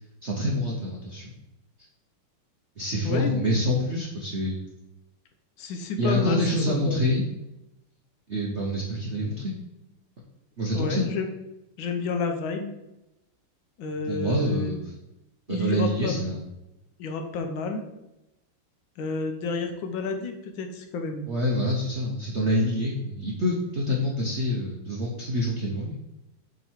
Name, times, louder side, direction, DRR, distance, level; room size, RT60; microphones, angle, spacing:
voice 1, 0.2-1.3 2.8-4.6 6.0-7.2 8.3-9.6 10.6-11.1 14.0-14.8 15.5-16.4 21.3-25.9, left 1 dB, 65° right, -3 dB, 0.7 m, -26 dB
voice 2, 3.0-3.5 5.6-6.4 6.7-7.0 10.7-11.3 11.8-12.7 13.8-14.7 15.5-16.2 17.0-17.8 19.0-21.2, left 4 dB, 70° left, 5 dB, 1.4 m, -30 dB
6.7 x 3.1 x 4.4 m, 0.94 s
omnidirectional pair, 2.4 m